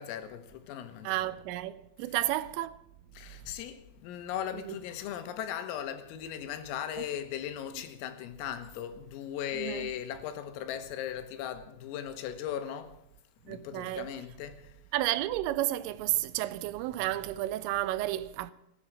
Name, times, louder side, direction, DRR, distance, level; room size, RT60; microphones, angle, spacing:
voice 1, 0.0-1.3 2.0-2.2 3.2-12.9 13.5-14.6, left 10 dB, 85° left, 3.9 m, -38 dB
voice 2, 1.0-2.8 4.7-4.8 7.0-7.1 9.5-9.9 13.5-14.1 14.9-18.5, right 15 dB, 80° right, 3.1 m, -32 dB
16.0 x 10.5 x 7.3 m
omnidirectional pair, 5.9 m